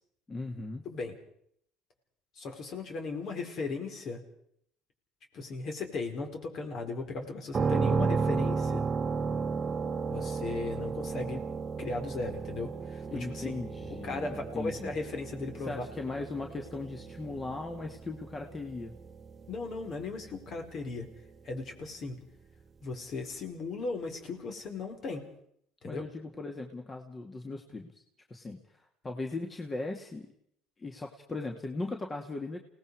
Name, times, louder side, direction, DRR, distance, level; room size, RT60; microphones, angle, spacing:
voice 1, 0.3-0.8 13.1-14.9 15.6-18.9 25.8-28.0 28.3-30.3 30.8-32.6, left 3 dB, 25° left, 3 dB, 2.2 m, -38 dB
voice 2, 0.8-1.2 2.3-4.2 5.3-8.8 10.1-11.4 11.8-13.5 14.0-15.8 19.5-21.1 21.4-22.2 22.8-25.3 25.8-26.0, left 3 dB, 55° left, 4 dB, 4.5 m, -37 dB
sound 1, 7.5-21.3, right 5 dB, 30° right, 1.1 m, -34 dB
29.0 x 19.0 x 4.8 m, 0.70 s
supercardioid pair, 85°, 0 cm